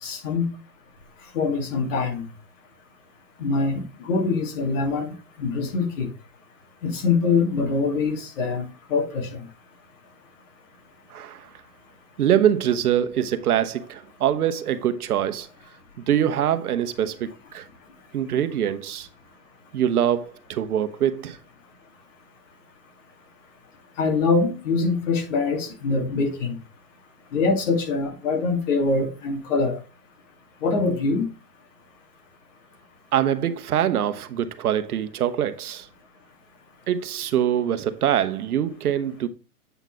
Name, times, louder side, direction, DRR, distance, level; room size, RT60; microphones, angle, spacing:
voice 1, 0.0-0.5 1.3-2.2 3.4-5.1 5.4-6.1 6.8-8.6 8.9-9.4 24.0-26.6 27.3-29.8 30.6-31.3, left 4 dB, 55° left, 2.4 m, -24 dB
voice 2, 11.1-11.5 12.2-15.5 16.0-17.6 18.1-19.1 19.7-21.4 33.1-35.9 36.9-39.3, right 10 dB, 70° right, 1.0 m, -24 dB
8.1 x 4.0 x 4.6 m
hypercardioid pair, 155°, 46 cm